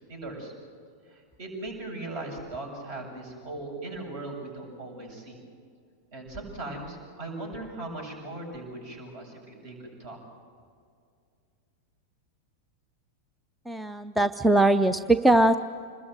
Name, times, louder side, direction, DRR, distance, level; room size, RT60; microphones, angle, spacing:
voice 1, 0.1-0.5 1.1-5.4 6.1-10.2, right 2 dB, 50° right, 2 dB, 7.8 m, -39 dB
voice 2, 13.7-15.6, right 1 dB, 5° right, 12 dB, 0.6 m, -21 dB
26.5 x 21.0 x 7.9 m, 2.2 s
figure-of-eight pair, 90°, 0 cm